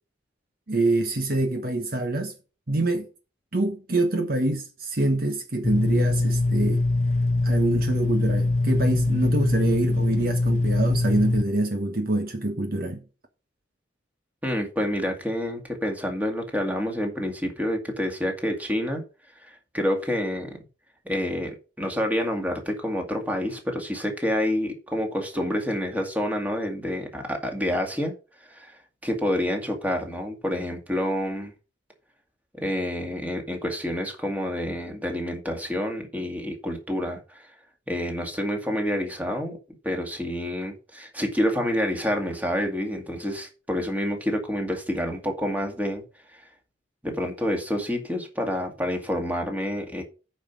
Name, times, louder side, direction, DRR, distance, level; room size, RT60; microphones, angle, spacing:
voice 1, 0.7-2.3 2.7-3.1 3.5-6.8 7.4-13.0, right 2 dB, 50° right, 1.2 m, -25 dB
sound 1, 5.6-11.4, left 2 dB, 40° left, 0.8 m, -23 dB
voice 2, 14.4-19.0 19.4-20.5 21.1-28.1 28.5-28.8 29.0-31.5 32.5-37.5 37.9-39.6 39.8-46.0 47.0-50.0, equal, 10° right, 2.1 m, -28 dB
9.1 x 5.6 x 6.0 m
head